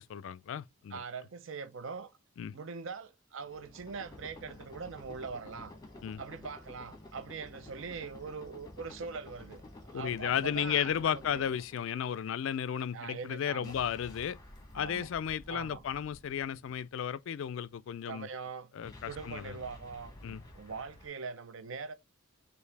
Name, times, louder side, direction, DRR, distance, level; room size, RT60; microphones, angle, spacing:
voice 1, 0.0-1.0 2.4-2.5 6.0-6.2 9.9-14.4 14.7-18.3 18.7-19.6 20.2-20.4, left 8 dB, 60° left, 0.3 m, -34 dB
voice 2, 0.9-2.1 2.5-5.8 6.2-9.6 9.9-11.4 12.9-13.7 14.8-15.1 15.5-15.8 18.1-18.7 19.0-21.9, right 5 dB, 60° right, 0.5 m, -42 dB
sound 1, 3.4-12.2 13.6-17.0 18.8-21.1, left 1 dB, 15° left, 0.9 m, -52 dB
4.6 x 2.6 x 3.3 m
head